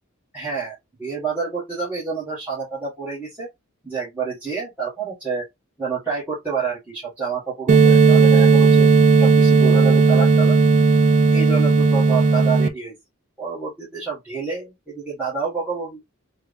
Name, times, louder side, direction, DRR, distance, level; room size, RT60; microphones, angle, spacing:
voice 1, 0.3-3.5 3.8-5.4 5.8-8.9 9.2-10.6 11.3-12.9 13.4-16.0, right 5 dB, 10° right, 1.4 m, -28 dB
sound 1, 7.7-12.7, right 4 dB, 35° right, 0.4 m, -14 dB
3.5 x 2.2 x 3.5 m
head